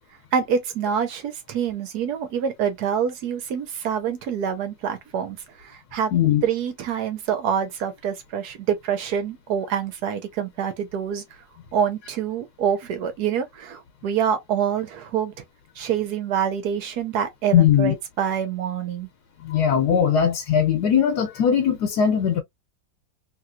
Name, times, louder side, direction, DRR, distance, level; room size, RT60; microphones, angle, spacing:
voice 1, 0.3-5.4 5.6-6.1 6.4-11.2 11.7-15.3 15.8-19.1, right 8 dB, 65° right, 1.2 m, -26 dB
voice 2, 6.1-6.4 17.5-17.9 19.4-22.4, left 8 dB, 70° left, 1.2 m, -19 dB
3.0 x 3.0 x 2.3 m
omnidirectional pair, 1.9 m